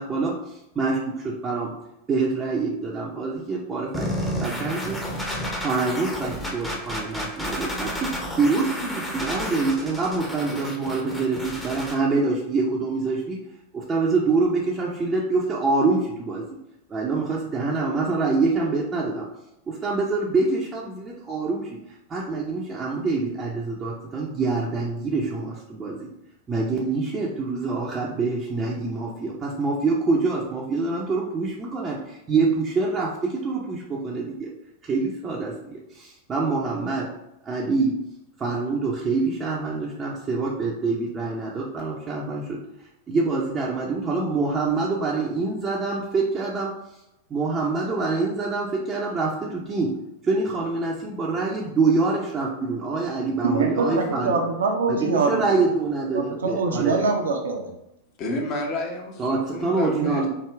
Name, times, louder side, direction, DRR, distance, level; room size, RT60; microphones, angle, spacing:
voice 1, 0.0-1.7 2.1-13.4 13.7-16.5 16.9-19.3 19.7-21.8 22.1-26.1 26.5-34.5 34.8-37.1 37.4-37.9 38.4-42.6 43.1-46.8 47.3-50.0 50.2-54.4 54.9-57.0 59.2-60.3, right 3 dB, 20° right, -4 dB, 0.7 m, -25 dB
sound 1, 3.9-11.9, equal, 5° left, 0.9 m, -31 dB
voice 2, 53.4-55.6 56.1-57.7 60.0-60.1, right 4 dB, 65° right, 3 dB, 0.7 m, -24 dB
voice 3, 58.2-60.3, left 2 dB, 35° left, 1 dB, 1.0 m, -31 dB
4.7 x 2.8 x 3.3 m, 0.85 s
figure-of-eight pair, 90°, 0 cm